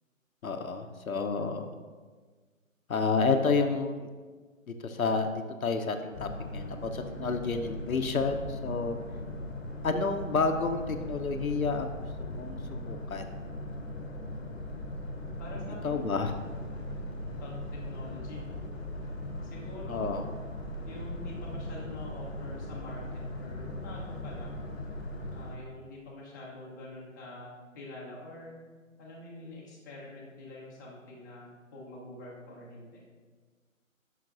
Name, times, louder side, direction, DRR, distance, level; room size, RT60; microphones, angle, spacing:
voice 1, 0.4-1.8 2.9-4.1 4.8-5.3 5.6-9.0 9.8-13.3 15.8-16.4 19.9-20.2, left 4 dB, 85° left, 6 dB, 0.7 m, -30 dB
Boat Water vehicle, 6.1-25.6, left 1 dB, 50° left, 1.0 m, -39 dB
voice 2, 14.4-14.9 15.4-16.1 16.6-16.7 17.4-18.6 19.4-20.3 20.9-24.5 25.3-28.6 29.0-33.0, left 2 dB, 15° left, -5 dB, 0.8 m, -46 dB
9.2 x 5.8 x 2.5 m, 1.4 s
figure-of-eight pair, 145°, 41 cm